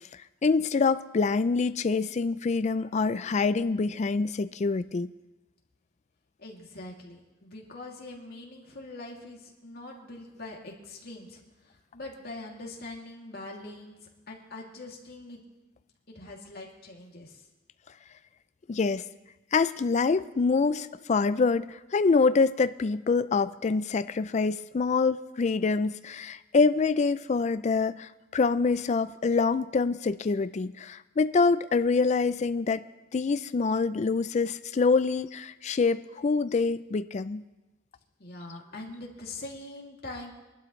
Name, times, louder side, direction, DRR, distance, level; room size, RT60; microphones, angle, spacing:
voice 1, 0.1-5.1 18.7-19.0 19.5-32.8 33.1-37.4, left 4 dB, 35° left, 13 dB, 0.4 m, -25 dB
voice 2, 6.4-11.4 11.7-14.0 14.3-15.4 16.1-17.4 38.2-40.3, left 2 dB, 50° left, -1 dB, 2.6 m, -43 dB
23.0 x 12.0 x 3.2 m, 1.1 s
head